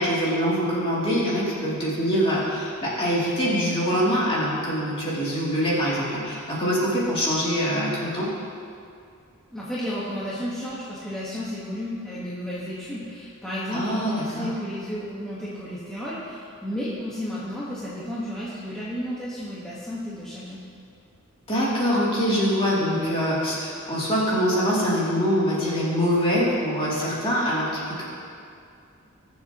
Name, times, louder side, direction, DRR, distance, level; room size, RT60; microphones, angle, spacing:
voice 1, 0.0-8.3 13.7-14.5 21.5-28.0, equal, 25° left, -7 dB, 2.9 m, -24 dB
voice 2, 9.5-20.6, equal, 5° left, -10 dB, 1.5 m, -32 dB
21.5 x 7.4 x 3.1 m, 2.5 s
head